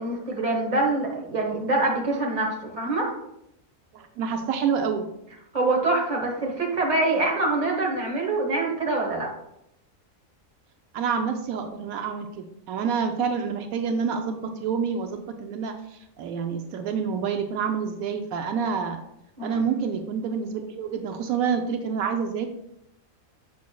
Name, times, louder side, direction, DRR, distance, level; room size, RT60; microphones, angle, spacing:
voice 1, 0.0-3.2 5.5-9.3 19.4-19.7, right 2 dB, 35° right, 0 dB, 1.4 m, -25 dB
voice 2, 3.9-5.1 10.9-19.0 19.4-22.5, right 6 dB, 85° right, 6 dB, 1.0 m, -28 dB
7.0 x 6.2 x 2.2 m, 0.80 s
omnidirectional pair, 1.4 m